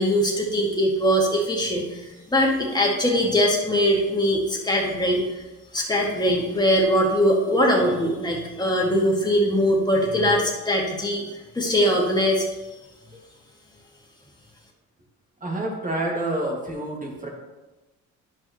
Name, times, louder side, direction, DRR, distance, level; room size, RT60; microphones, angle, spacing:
voice 1, 0.0-5.4 5.7-11.2 11.5-12.5, equal, 15° left, -2 dB, 2.0 m, -21 dB
voice 2, 15.4-17.3, right 1 dB, 25° right, -1 dB, 2.1 m, -28 dB
10.5 x 5.6 x 3.1 m, 1.1 s
cardioid pair, 90°, 30 cm